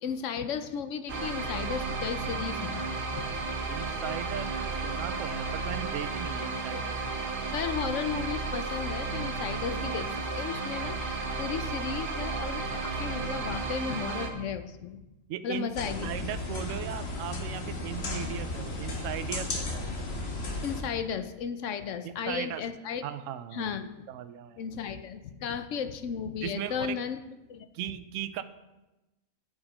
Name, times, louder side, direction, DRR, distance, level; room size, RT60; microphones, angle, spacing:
voice 1, 0.0-3.4 7.4-15.0 15.4-16.1 20.6-23.0 23.5-23.9 24.6-27.2 27.5-27.7, left 7 dB, 70° left, 9 dB, 1.0 m, -35 dB
sound 1, 1.1-14.3, right 3 dB, 45° right, 1.1 m, -33 dB
voice 2, 3.7-7.0 15.3-15.7 16.0-19.9 22.0-22.6 23.0-23.7 24.1-24.6 26.4-27.0 27.7-28.4, right 11 dB, 75° right, 12 dB, 0.9 m, -37 dB
sound 2, 15.7-20.8, left 2 dB, 50° left, 1.5 m, -34 dB
8.6 x 7.4 x 5.0 m, 1.0 s
omnidirectional pair, 1.4 m